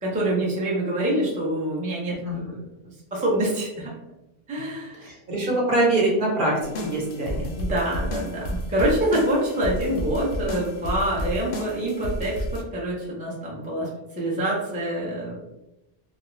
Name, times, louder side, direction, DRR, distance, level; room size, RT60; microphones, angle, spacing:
voice 1, 0.0-2.7 3.1-3.9 4.5-5.1 6.8-6.9 7.6-13.9 14.2-15.4, right 1 dB, 10° right, -6 dB, 0.5 m, -26 dB
voice 2, 5.0-7.5, right 1 dB, 55° right, -4 dB, 1.0 m, -24 dB
sound 1, 6.6-12.6, equal, 65° left, 0.7 m, -31 dB
2.4 x 2.0 x 3.0 m, 0.94 s
omnidirectional pair, 1.1 m